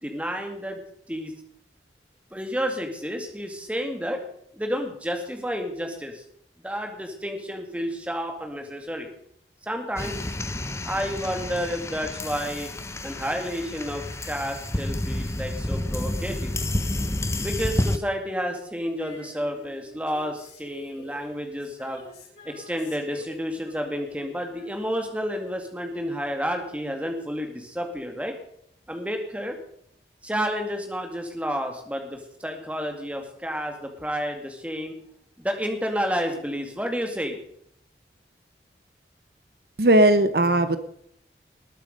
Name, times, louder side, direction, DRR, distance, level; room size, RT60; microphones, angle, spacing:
voice 1, 0.0-0.8 1.1-1.3 2.3-4.2 4.5-6.2 6.6-9.1 9.6-10.2 10.8-12.7 13.0-16.6 17.4-22.0 22.4-28.3 28.9-29.6 30.2-35.0 35.4-37.4, equal, 5° right, 4 dB, 2.1 m, -30 dB
sound 1, 10.0-18.0, left 1 dB, 15° left, 0.7 m, -30 dB
Female singing, 19.0-25.6 25.9-26.0, left 1 dB, 70° left, 6.4 m, -49 dB
voice 2, 39.8-40.8, right 1 dB, 60° right, 11 dB, 0.8 m, -18 dB
20.0 x 8.8 x 5.2 m, 0.70 s
head